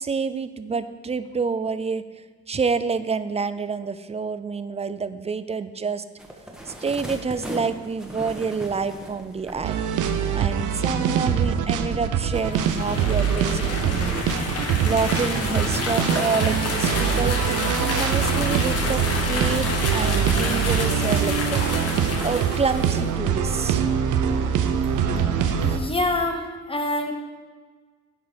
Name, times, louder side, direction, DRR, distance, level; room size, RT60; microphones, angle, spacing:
voice 1, 0.0-2.0 2.5-6.0 6.7-9.8 10.3-14.2 14.8-17.4 17.8-21.6 22.2-23.9, right 5 dB, 20° right, 13 dB, 0.4 m, -28 dB
sound 1, 6.2-10.5 10.9-11.1, equal, ahead, 1.3 m, -38 dB
sound 2, 9.6-25.8, right 8 dB, 80° right, 0.7 m, -24 dB
sound 3, 12.3-23.1, left 3 dB, 50° left, 1.3 m, -29 dB
voice 2, 25.4-27.1, left 2 dB, 20° left, 4 dB, 1.1 m, -26 dB
9.5 x 4.6 x 5.1 m, 1.4 s
cardioid pair, 90°, 30 cm